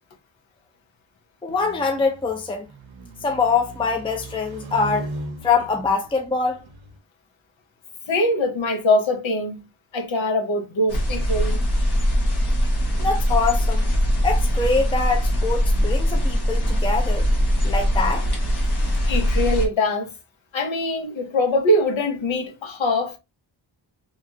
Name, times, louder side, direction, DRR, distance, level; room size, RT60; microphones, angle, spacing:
voice 1, 1.4-2.7 3.2-5.1 5.4-6.7 13.0-13.9 14.2-17.3 17.6-18.3, left 4 dB, 10° left, 0.5 m, -24 dB
sound 1, 1.5-7.0, right 2 dB, 90° right, 0.6 m, -38 dB
voice 2, 8.1-9.6 9.9-11.6 19.0-20.1 20.5-23.2, left 1 dB, 90° left, 0.9 m, -22 dB
sound 2, 10.9-19.7, equal, 60° left, 1.1 m, -21 dB
3.0 x 2.4 x 2.8 m
wide cardioid pair, 120°, 46 cm